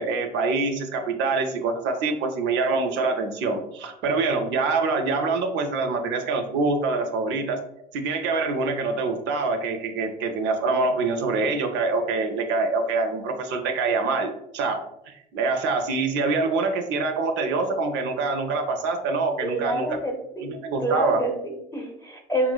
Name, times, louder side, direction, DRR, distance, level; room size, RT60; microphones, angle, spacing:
voice 1, 0.0-7.6 7.9-14.8 15.1-20.0 20.4-21.2, right 3 dB, 70° right, 5 dB, 0.4 m, -25 dB
voice 2, 19.4-20.5 20.8-22.5, right 1 dB, 15° left, 1 dB, 0.7 m, -28 dB
3.0 x 2.0 x 2.2 m, 0.82 s
hypercardioid pair, 70°, 20 cm